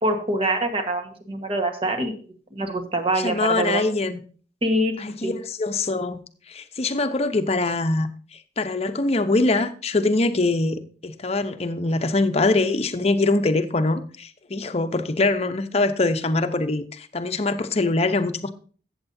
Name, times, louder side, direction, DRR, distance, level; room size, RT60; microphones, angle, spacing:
voice 1, 0.0-2.2 2.5-3.8 4.6-4.9 5.2-5.3, right 1 dB, 35° right, 1.4 m, -24 dB
voice 2, 3.2-4.2 5.0-6.2 6.5-18.5, left 2 dB, 35° left, 0.7 m, -23 dB
14.0 x 8.0 x 2.7 m
head